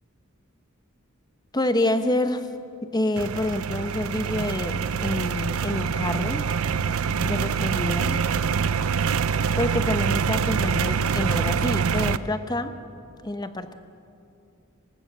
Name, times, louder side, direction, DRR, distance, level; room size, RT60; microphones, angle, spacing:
voice 1, 1.5-2.5 2.8-6.5 7.2-8.2 9.6-12.8 13.2-13.7, left 1 dB, 20° left, 9 dB, 0.9 m, -27 dB
sound 1, 3.2-12.2, right 6 dB, 85° right, 0.6 m, -25 dB
19.5 x 19.0 x 7.9 m, 2.5 s
head